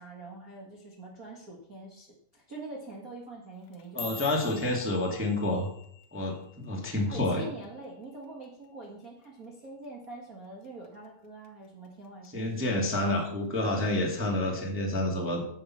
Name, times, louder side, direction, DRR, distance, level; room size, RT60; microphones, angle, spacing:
voice 1, 0.0-4.3 7.1-12.7, right 2 dB, 75° right, -3 dB, 0.8 m, -45 dB
sound 1, 3.5-8.0 8.2-8.7 9.0-9.5 9.8-10.1 10.6-11.1 11.4-12.3 12.6-13.1 13.9-14.0, left 4 dB, 85° left, 1.5 m, -47 dB
voice 2, 3.9-5.7 6.1-7.4 12.3-15.4, left 1 dB, 10° right, -1 dB, 0.6 m, -29 dB
11.0 x 7.9 x 5.7 m, 0.69 s
omnidirectional pair, 4.6 m